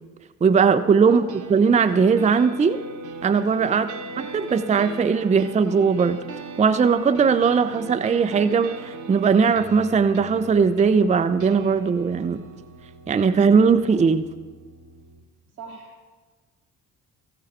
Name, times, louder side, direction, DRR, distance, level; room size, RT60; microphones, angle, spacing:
voice 1, 0.4-1.2 1.5-2.8 3.2-3.9 4.3-6.2 6.6-12.4 13.1-14.2, right 5 dB, 15° right, 10 dB, 0.5 m, -19 dB
voice 2, 1.0-1.4 3.7-4.1 15.6-16.1, right 3 dB, 90° right, -2 dB, 1.6 m, -41 dB
sound 1, 1.3-15.3, right 4 dB, 45° right, 1.1 m, -40 dB
14.5 x 9.5 x 3.5 m, 1.4 s
figure-of-eight pair, 40°, 43 cm